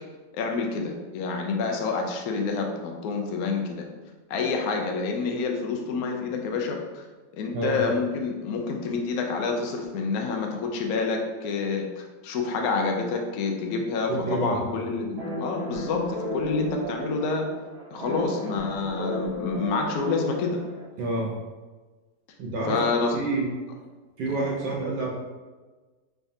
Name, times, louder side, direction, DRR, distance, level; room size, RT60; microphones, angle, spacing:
voice 1, 0.3-3.9 4.3-7.0 7.3-17.5 17.9-20.6 22.7-23.1, left 4 dB, 70° left, 2 dB, 0.9 m, -28 dB
voice 2, 14.1-14.8 21.0-21.3 22.4-22.8 23.1-23.5 24.2-25.1, right 2 dB, 75° right, -3 dB, 1.3 m, -28 dB
sound 1, 15.2-20.8, equal, 55° right, 1.2 m, -35 dB
3.4 x 3.4 x 2.6 m, 1.3 s
omnidirectional pair, 2.0 m